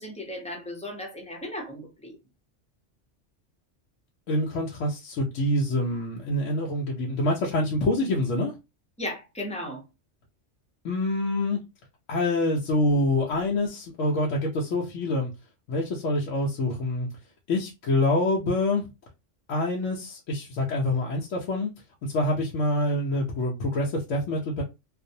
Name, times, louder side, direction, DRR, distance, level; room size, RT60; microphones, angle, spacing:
voice 1, 0.0-2.2 9.0-9.8, left 1 dB, 10° left, 0.5 m, -36 dB
voice 2, 4.3-8.5 10.8-11.6 12.1-15.3 15.7-17.1 17.5-18.8 19.5-21.7 22.0-24.6, left 1 dB, 85° left, 0.9 m, -26 dB
2.5 x 2.0 x 2.6 m
omnidirectional pair, 1.3 m